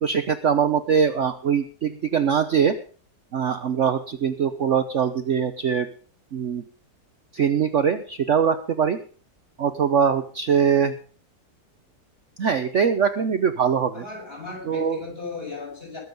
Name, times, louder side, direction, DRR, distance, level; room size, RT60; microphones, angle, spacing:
voice 1, 0.0-2.8 3.3-5.9 6.3-6.6 7.3-9.0 9.6-10.9 12.4-14.0 14.7-15.0, right 7 dB, 50° right, 9 dB, 1.0 m, -22 dB
voice 2, 13.9-16.0, left 4 dB, 30° left, -1 dB, 6.8 m, -36 dB
21.0 x 7.9 x 5.3 m, 0.42 s
omnidirectional pair, 1.9 m